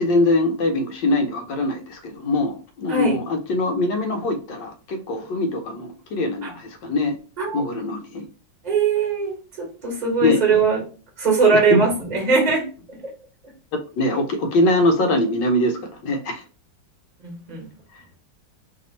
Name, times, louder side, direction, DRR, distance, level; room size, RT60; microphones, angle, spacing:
voice 1, 0.0-7.2 7.5-8.2 10.2-10.4 11.5-11.8 14.0-16.4, left 2 dB, 70° left, 4 dB, 1.3 m, -22 dB
voice 2, 7.4-7.7 8.6-10.8 11.2-13.0 17.2-17.7, right 4 dB, 25° right, -1 dB, 1.3 m, -21 dB
3.3 x 2.8 x 4.0 m, 0.38 s
omnidirectional pair, 2.1 m